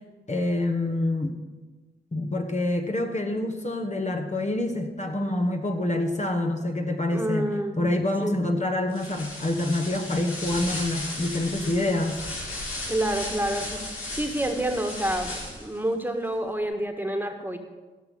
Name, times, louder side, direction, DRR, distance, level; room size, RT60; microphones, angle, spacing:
voice 1, 0.3-1.3 2.1-7.5 7.8-12.2, left 1 dB, 35° left, 4 dB, 1.4 m, -26 dB
voice 2, 7.1-7.8 8.2-8.4 12.9-13.8 14.1-15.3 15.6-17.6, right 1 dB, 10° right, 4 dB, 1.7 m, -28 dB
sound 1, 8.9-15.8, left 2 dB, 80° left, 2.6 m, -35 dB
16.5 x 6.0 x 5.4 m, 1.3 s
supercardioid pair, 40°, 21 cm